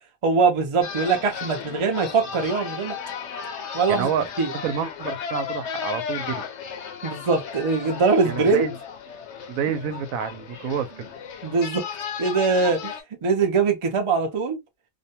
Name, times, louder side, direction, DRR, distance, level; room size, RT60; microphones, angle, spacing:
voice 1, 0.2-3.0 3.7-4.1 4.4-4.5 7.0-8.7 11.4-11.8 12.2-12.9 13.2-14.6, right 4 dB, 50° right, 0.3 m, -22 dB
sound 1, 0.8-13.0, left 7 dB, 65° left, 0.8 m, -35 dB
voice 2, 3.9-4.3 4.6-6.4 8.2-8.7 9.5-11.1, right 7 dB, 75° right, 1.0 m, -28 dB
2.5 x 2.2 x 2.7 m
omnidirectional pair, 1.5 m